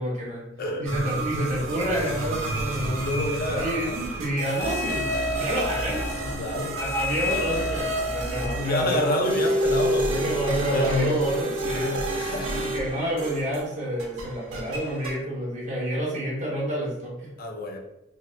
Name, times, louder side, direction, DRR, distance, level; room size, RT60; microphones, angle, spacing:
voice 1, 0.0-0.4 0.8-3.0 3.5-6.0 6.8-9.5 10.2-12.0 12.6-17.3, right 1 dB, 40° right, -5 dB, 1.1 m, -28 dB
sound 1, 0.9-13.7 14.0-15.2, right 1 dB, 85° right, 0.6 m, -29 dB
voice 2, 2.8-4.0 6.2-6.8 8.4-11.2 11.7-12.8 17.4-17.8, left 2 dB, 50° left, 2 dB, 0.5 m, -29 dB
4.0 x 2.0 x 2.5 m, 0.86 s
head